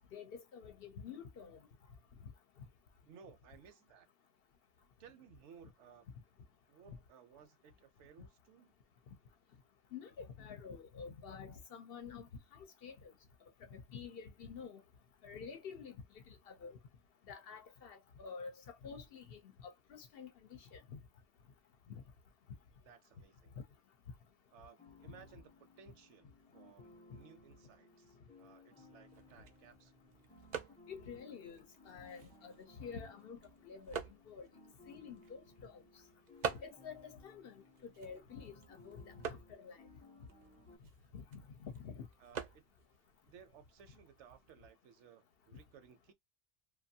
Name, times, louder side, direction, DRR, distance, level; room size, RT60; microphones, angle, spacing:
voice 1, 0.1-1.6 9.9-12.9 13.7-14.8 15.2-15.9 16.5-16.8 17.3-21.0 21.9-22.0 23.6-23.7 30.9-34.0 34.3-34.5 34.9-35.8 36.6-39.8 41.1-42.1, left 6 dB, 60° left, 0.7 m, -49 dB
voice 2, 3.1-4.1 5.0-6.1 6.7-8.7 22.8-23.5 24.5-29.9 42.2-42.6 43.3-46.1, right 7 dB, 80° right, 0.9 m, -60 dB
sound 1, 24.8-40.8, left 2 dB, 10° left, 0.3 m, -62 dB
sound 2, 29.0-44.5, right 6 dB, 55° right, 0.5 m, -49 dB
2.5 x 2.3 x 2.6 m
omnidirectional pair, 1.2 m